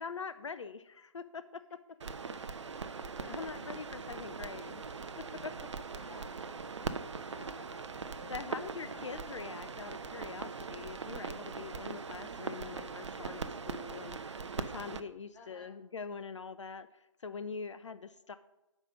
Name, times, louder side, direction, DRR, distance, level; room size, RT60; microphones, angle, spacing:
voice 1, 0.0-1.8 3.3-4.8 5.2-5.5 8.3-18.3, left 5 dB, 65° left, 12 dB, 0.5 m, -44 dB
sound 1, 2.0-15.0, right 5 dB, 60° right, 0.6 m, -41 dB
voice 2, 3.1-3.5 5.8-6.5 7.1-9.3 15.3-15.7, left 4 dB, 10° left, -1 dB, 1.2 m, -55 dB
7.1 x 5.4 x 6.2 m, 0.97 s
figure-of-eight pair, 140°, 17 cm